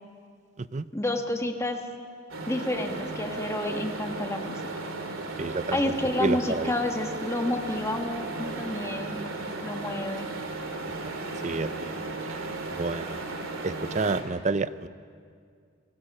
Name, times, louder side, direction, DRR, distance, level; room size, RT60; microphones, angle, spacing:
voice 1, 0.9-1.8 2.5-4.6 5.7-9.3 9.6-10.3, left 1 dB, 15° left, 4 dB, 1.4 m, -30 dB
sound 1, 2.3-14.2, right 2 dB, 85° right, 2.5 m, -35 dB
voice 2, 5.4-5.9 6.2-6.7 11.4-12.4 12.7-13.2 13.6-14.9, right 3 dB, 35° right, 15 dB, 0.5 m, -30 dB
30.0 x 19.0 x 5.5 m, 2.2 s
head